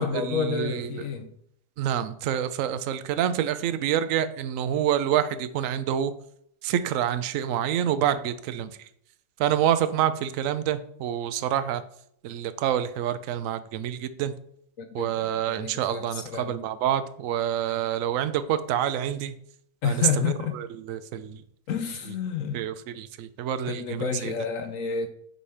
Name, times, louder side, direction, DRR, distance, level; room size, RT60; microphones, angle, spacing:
voice 1, 0.0-1.3 14.8-16.6 19.8-20.6 21.7-22.6 23.7-25.1, left 7 dB, 65° left, 8 dB, 0.8 m, -30 dB
voice 2, 1.8-6.1 6.6-8.7 9.4-11.8 12.2-14.3 14.9-16.2 16.5-19.3 19.8-19.9 20.9-21.4 22.5-24.3, right 10 dB, 70° right, 13 dB, 0.7 m, -27 dB
5.2 x 4.9 x 5.6 m, 0.69 s
omnidirectional pair, 1.9 m